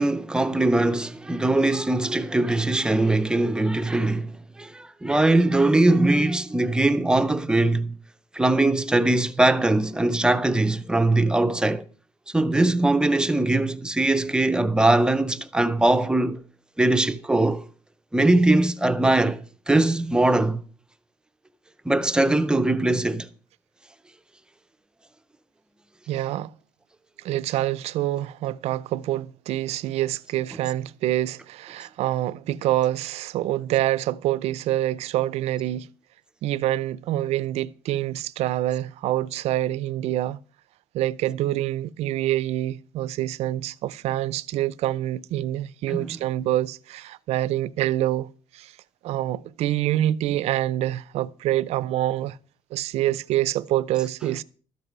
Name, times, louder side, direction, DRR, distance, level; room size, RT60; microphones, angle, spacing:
voice 1, 0.0-4.3 4.6-7.9 8.3-11.8 12.3-16.4 16.8-17.6 18.1-20.6 21.9-23.3 45.9-46.2, right 2 dB, 10° right, 0.5 m, -21 dB
voice 2, 26.1-26.5 27.2-35.9 36.4-40.4 40.9-48.7 49.0-52.4 52.7-54.4, right 14 dB, 80° right, 0.5 m, -26 dB
13.0 x 8.2 x 6.1 m
cardioid pair, 180°, 11 cm